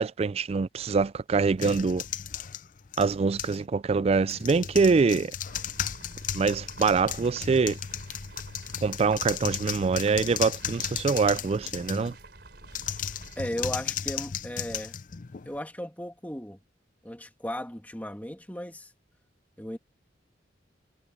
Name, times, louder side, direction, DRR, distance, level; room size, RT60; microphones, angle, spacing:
voice 1, 0.0-2.0 3.0-5.3 6.3-7.8 8.8-12.1, right 4 dB, 35° right, 0.3 m, -24 dB
sound 1, 1.6-3.6 4.2-12.2 12.7-15.6, left 9 dB, 45° left, 0.5 m, -35 dB
sound 2, 5.5-13.5, right 2 dB, 60° right, 4.6 m, -48 dB
voice 2, 13.4-14.9 15.4-16.6 17.0-18.9 19.6-19.8, equal, 10° left, 2.5 m, -36 dB
head